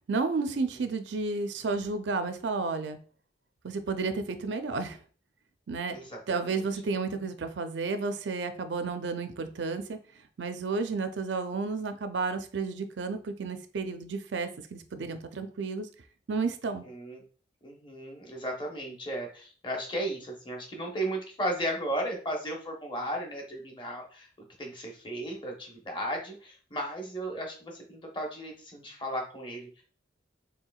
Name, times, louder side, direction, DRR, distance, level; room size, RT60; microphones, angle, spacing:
voice 1, 0.1-3.0 3.6-5.0 5.7-6.0 6.3-10.0 10.4-15.9 16.3-16.9, right 4 dB, 80° right, 8 dB, 0.5 m, -32 dB
voice 2, 5.9-6.7 16.8-17.2 17.6-24.3 24.6-29.8, right 1 dB, 25° left, 0 dB, 0.9 m, -35 dB
4.5 x 3.3 x 2.3 m, 0.41 s
head